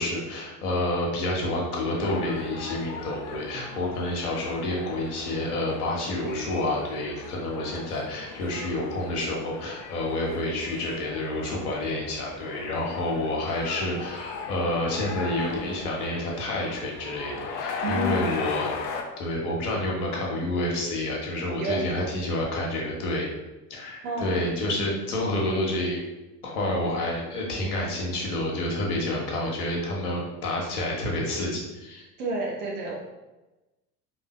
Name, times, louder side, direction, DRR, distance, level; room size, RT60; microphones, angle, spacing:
voice 1, 0.0-18.7 19.2-23.3 23.7-26.0 26.4-32.1, left 1 dB, 65° left, -2 dB, 1.3 m, -29 dB
sound 1, 2.0-19.0, left 5 dB, 45° left, 0.7 m, -38 dB
voice 2, 17.8-18.2 21.6-21.8 24.0-24.4 32.2-32.9, right 2 dB, 65° right, -2 dB, 1.3 m, -30 dB
4.5 x 3.1 x 3.1 m, 1.1 s
figure-of-eight pair, 70°, 48 cm